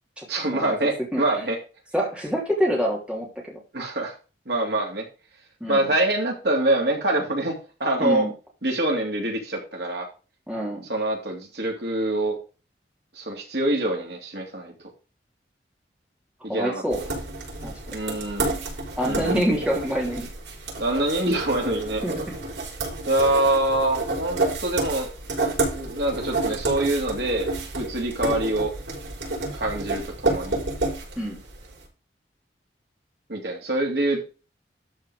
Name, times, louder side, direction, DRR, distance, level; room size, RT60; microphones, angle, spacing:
voice 1, 0.3-1.6 3.7-4.1 4.5-5.0 5.7-7.5 7.8-8.3 8.6-10.1 10.9-12.3 13.2-14.7 16.4-16.8 17.9-18.6 19.0-19.4 20.8-22.0 23.1-25.1 25.7-27.5 27.7-28.7 29.5-30.6 33.3-34.2, right 1 dB, 65° right, 0 dB, 3.1 m, -25 dB
voice 2, 1.9-3.6 5.6-5.9 8.0-8.3 10.5-10.9 16.5-17.0 17.6-17.7 19.0-20.3 22.0-22.4 31.2-31.4, equal, 5° right, -2 dB, 2.9 m, -26 dB
sound 1, 16.9-31.7, right 2 dB, 85° right, 5.3 m, -30 dB
12.5 x 4.7 x 4.9 m, 0.33 s
head